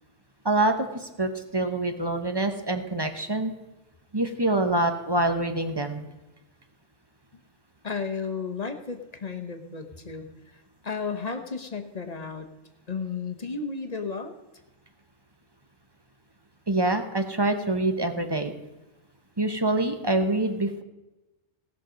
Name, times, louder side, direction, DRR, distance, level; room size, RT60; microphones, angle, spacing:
voice 1, 0.4-3.5 4.1-6.1 16.7-18.5 19.4-20.8, right 2 dB, 20° right, 7 dB, 0.9 m, -25 dB
voice 2, 7.8-12.5 12.9-14.3, left 5 dB, 35° left, 6 dB, 1.0 m, -33 dB
18.0 x 6.4 x 5.1 m, 1.0 s
omnidirectional pair, 1.3 m